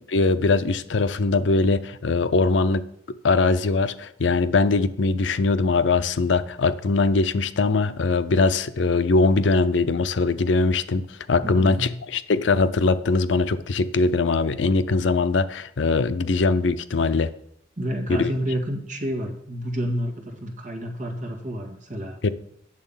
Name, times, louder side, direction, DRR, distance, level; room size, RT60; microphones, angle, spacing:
voice 1, 0.0-2.8 3.2-17.3 18.1-18.3 22.2-22.3, left 3 dB, 80° left, 13 dB, 0.6 m, -21 dB
voice 2, 11.4-11.9 17.8-22.2, equal, 45° right, 2 dB, 1.9 m, -29 dB
8.8 x 7.1 x 5.6 m, 0.72 s
head